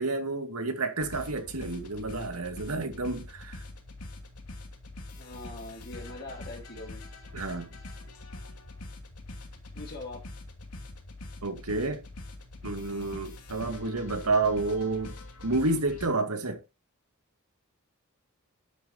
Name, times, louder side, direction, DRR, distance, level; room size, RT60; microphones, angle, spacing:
voice 1, 0.0-3.6 7.3-7.7 11.4-12.0 12.6-15.2 15.4-16.6, right 3 dB, 85° right, 2.1 m, -30 dB
sound 1, 1.0-16.1, left 2 dB, 90° left, 2.6 m, -44 dB
voice 2, 5.2-7.0 9.7-10.3, left 2 dB, 45° left, 2.1 m, -42 dB
10.0 x 9.8 x 2.8 m
head